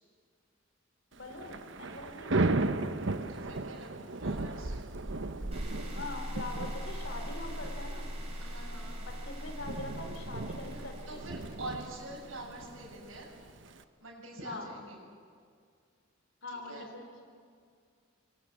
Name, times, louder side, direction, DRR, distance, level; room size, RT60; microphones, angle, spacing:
voice 1, 1.1-2.6 5.9-8.1 9.1-11.4 14.4-14.7 16.4-17.3, left 2 dB, 65° left, 5 dB, 4.1 m, -43 dB
Thunder / Rain, 1.2-13.8, right 2 dB, 65° right, 1.1 m, -36 dB
voice 2, 3.3-4.8 8.4-9.0 10.7-13.3 14.0-15.0 16.5-16.9, right 2 dB, 90° right, -3 dB, 7.0 m, -45 dB
sound 1, 5.5-12.6, equal, 30° right, 6.0 m, -41 dB
27.5 x 23.0 x 8.4 m, 2.2 s
head